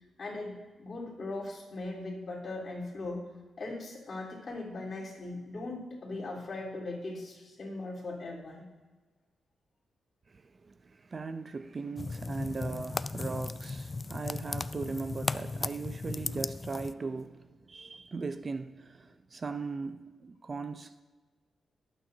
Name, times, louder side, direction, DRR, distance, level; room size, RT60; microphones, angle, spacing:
voice 1, 0.2-3.3 3.6-8.7, left 2 dB, 50° left, 3.7 m, -39 dB
voice 2, 10.3-20.9, right 4 dB, 40° right, 0.5 m, -39 dB
sound 1, 12.0-16.9, left 3 dB, 30° left, 0.3 m, -36 dB
22.0 x 8.9 x 2.7 m
cardioid pair, 100°, 0 cm